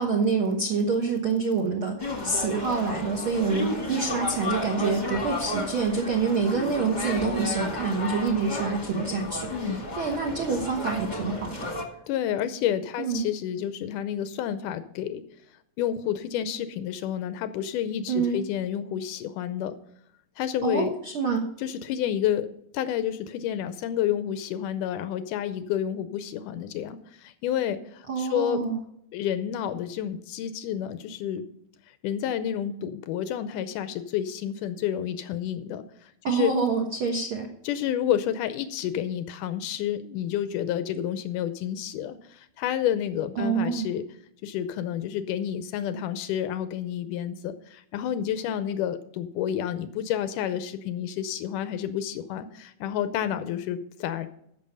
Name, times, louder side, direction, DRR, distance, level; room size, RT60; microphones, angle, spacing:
voice 1, 0.0-9.5 10.0-11.7 13.0-13.3 18.1-18.4 20.6-21.4 28.1-28.8 36.2-37.5 43.4-43.9, right 4 dB, 75° right, 2 dB, 1.2 m, -26 dB
sound 1, 2.0-11.8, left 1 dB, 25° left, 0.9 m, -33 dB
voice 2, 9.5-9.8 12.1-15.2 15.8-19.8 20.4-20.9 21.6-28.7 29.1-31.5 32.0-36.5 37.6-44.0 44.4-54.3, left 10 dB, 80° left, 11 dB, 1.9 m, -30 dB
14.5 x 6.4 x 5.5 m, 0.74 s
omnidirectional pair, 4.4 m